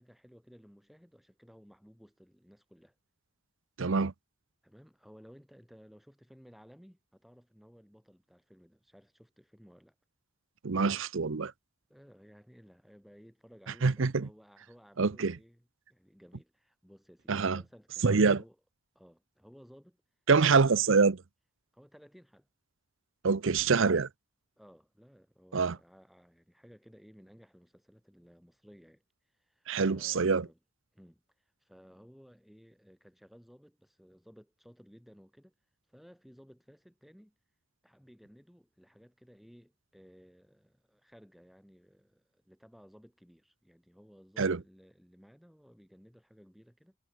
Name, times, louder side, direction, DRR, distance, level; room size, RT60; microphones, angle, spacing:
voice 1, 0.0-2.9 4.6-9.9 11.9-18.6 18.9-20.0 21.7-22.5 24.6-29.0 29.3-30.6 30.9-35.5 35.9-37.3 37.8-47.0, equal, ahead, 7.8 m, -58 dB
voice 2, 3.8-4.1 10.6-11.5 13.8-14.3 15.0-15.3 17.3-17.6 18.0-18.4 20.3-21.2 23.2-24.1 25.5-25.8 29.7-30.4 44.4-44.6, right 4 dB, 65° right, 0.7 m, -25 dB
head